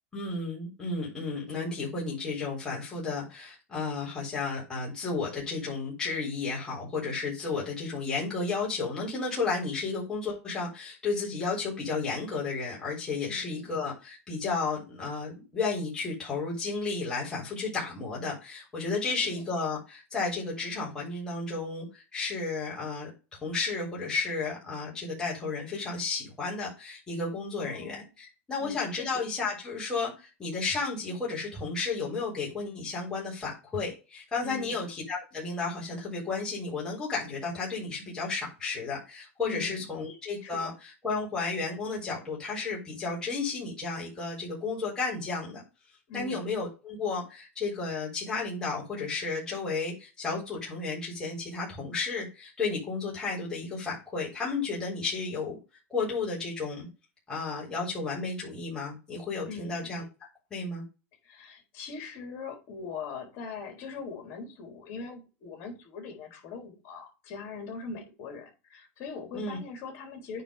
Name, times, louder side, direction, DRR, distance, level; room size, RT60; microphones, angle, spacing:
voice 1, 0.1-23.1 23.4-45.6 46.1-55.6 55.9-56.9 57.3-60.0 60.5-60.8 69.3-69.6, left 4 dB, 10° left, -5 dB, 3.6 m, -33 dB
voice 2, 13.3-13.7 19.2-19.4 27.6-28.1 28.6-29.1 34.4-34.8 39.5-39.9 40.4-40.6 46.1-46.5 59.5-60.0 61.2-70.4, left 5 dB, 45° left, 2 dB, 3.7 m, -41 dB
9.2 x 3.4 x 5.0 m, 0.29 s
supercardioid pair, 145°, 7 cm